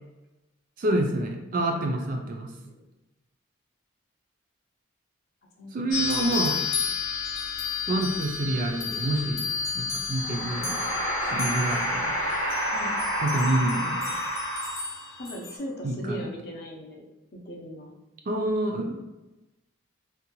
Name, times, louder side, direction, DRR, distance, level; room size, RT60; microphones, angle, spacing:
voice 1, 0.8-2.5 5.7-6.6 7.9-9.5 9.7-10.8 11.2-12.1 13.2-14.0 15.8-16.3 18.3-19.0, right 1 dB, 40° right, 3 dB, 0.3 m, -27 dB
voice 2, 1.8-2.2 2.6-2.8 5.6-6.0 12.7-13.0 15.2-17.0 17.3-17.9, equal, 50° left, -1 dB, 0.5 m, -39 dB
sound 1, 5.9-15.6, left 5 dB, 85° left, 0.8 m, -32 dB
sound 2, 10.1-15.2, equal, 15° left, 0.8 m, -29 dB
2.6 x 2.2 x 2.8 m, 1.0 s
head